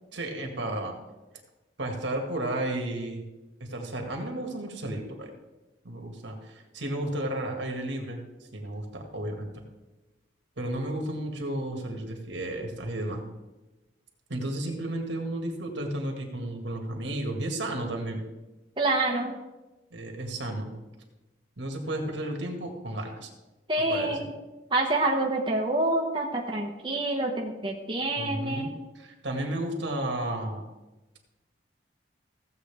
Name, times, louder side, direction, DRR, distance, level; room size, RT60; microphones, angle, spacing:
voice 1, 0.1-1.0 1.8-3.2 3.6-5.3 5.8-8.2 8.5-9.5 10.6-13.2 14.3-18.2 19.9-20.7 21.6-23.3 23.9-24.3 28.2-28.7 29.0-30.6, right 1 dB, 80° right, 2 dB, 1.9 m, -33 dB
voice 2, 18.8-19.3 23.7-24.3 24.7-28.8, right 2 dB, 25° right, -1 dB, 1.0 m, -27 dB
15.5 x 8.0 x 3.5 m, 1.1 s
head